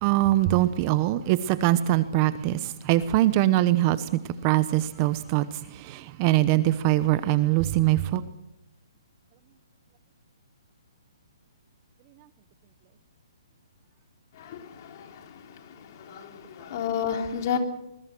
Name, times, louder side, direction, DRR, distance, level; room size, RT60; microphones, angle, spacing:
voice 1, 0.0-5.5 5.7-8.2, right 15 dB, 25° right, 15 dB, 0.9 m, -23 dB
voice 2, 14.4-15.1 16.0-17.6, left 8 dB, 40° left, 5 dB, 3.6 m, -31 dB
25.5 x 21.5 x 6.2 m, 0.85 s
hypercardioid pair, 160°, 3 cm